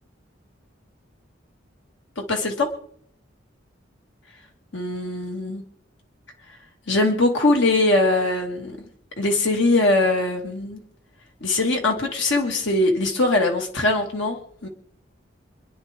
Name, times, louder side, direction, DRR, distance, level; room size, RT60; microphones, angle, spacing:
voice 1, 2.2-2.7 4.7-5.6 6.9-8.8 9.2-10.8 11.4-14.7, left 2 dB, 70° left, 2 dB, 2.1 m, -21 dB
27.0 x 10.0 x 3.7 m, 0.64 s
head